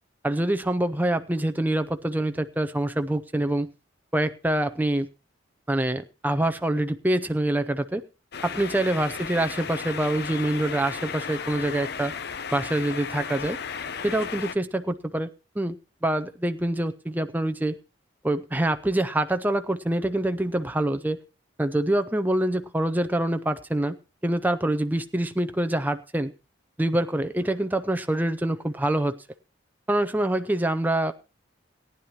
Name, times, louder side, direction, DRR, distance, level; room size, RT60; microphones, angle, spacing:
voice 1, 0.2-3.7 4.1-5.1 5.7-8.0 8.4-12.1 12.5-13.6 14.0-15.3 15.6-15.8 16.0-17.8 18.2-21.2 21.6-24.0 24.2-26.3 26.8-29.2 29.9-31.1, right 1 dB, 10° right, 9 dB, 0.5 m, -25 dB
sound 1, 8.3-14.5, left 6 dB, 55° left, 0.7 m, -35 dB
18.0 x 10.0 x 3.0 m, 0.31 s
head